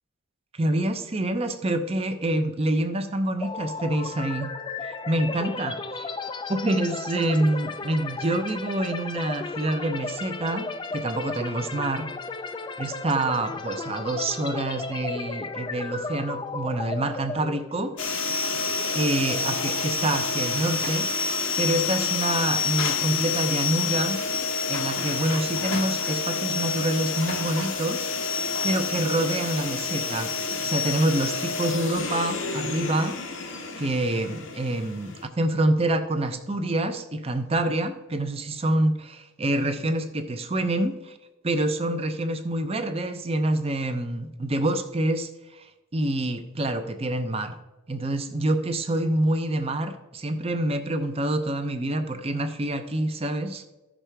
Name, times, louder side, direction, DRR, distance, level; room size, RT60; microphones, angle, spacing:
voice 1, 0.5-4.5 4.8-6.1 6.5-12.1 12.8-17.9 18.9-24.2 24.7-28.1 28.4-30.3 30.6-33.5 33.8-41.2 41.4-45.7 45.9-47.6 47.9-53.6, right 1 dB, 30° right, 8 dB, 0.6 m, -27 dB
sound 1, 3.4-21.2, left 3 dB, 20° left, 0.4 m, -35 dB
sound 2, 18.0-35.2, left 5 dB, 65° left, 0.9 m, -28 dB
14.5 x 6.1 x 3.4 m, 1.1 s
head